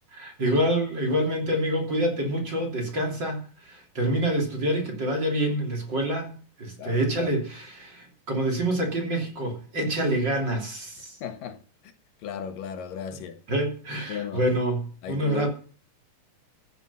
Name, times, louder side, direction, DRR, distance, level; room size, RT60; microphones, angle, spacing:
voice 1, 0.1-3.4 3.6-6.3 6.6-11.2 13.5-15.5, right 1 dB, 30° right, 3.4 m, -27 dB
voice 2, 6.8-7.3 11.2-11.6 11.8-11.9 12.2-13.4 14.1-14.4 15.0-15.5, left 8 dB, 75° left, 3.0 m, -35 dB
14.5 x 9.2 x 5.6 m
omnidirectional pair, 4.0 m